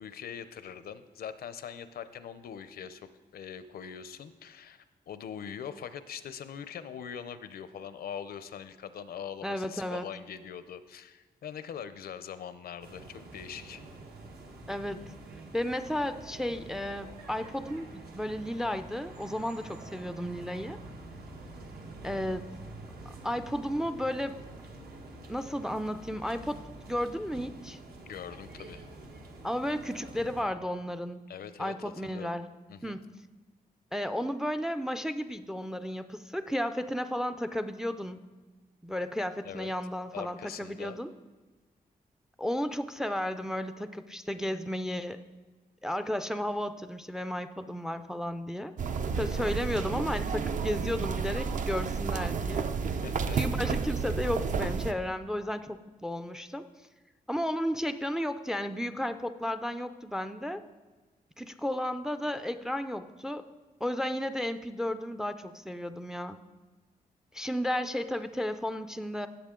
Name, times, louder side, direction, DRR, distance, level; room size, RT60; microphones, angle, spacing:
voice 1, 0.0-13.8 28.1-28.8 31.3-32.3 32.7-33.0 39.4-39.7 40.1-41.0 53.0-53.4, left 8 dB, 75° left, 13 dB, 0.6 m, -42 dB
voice 2, 9.4-10.1 14.7-15.1 15.5-20.8 22.0-22.5 23.2-24.4 25.3-27.8 29.4-31.2 31.6-32.5 32.8-33.1 33.9-38.2 38.8-41.1 42.4-45.2 45.8-48.7 49.2-52.7 53.3-56.6 57.3-60.6 61.4-63.5 63.8-66.4 67.3-69.3, equal, 5° right, 10 dB, 0.3 m, -33 dB
sound 1, 12.8-30.4, right 2 dB, 80° right, 1.4 m, -47 dB
sound 2, 48.8-54.9, right 5 dB, 55° right, 0.5 m, -31 dB
17.5 x 7.1 x 3.7 m, 1.3 s
wide cardioid pair, 160°, 16 cm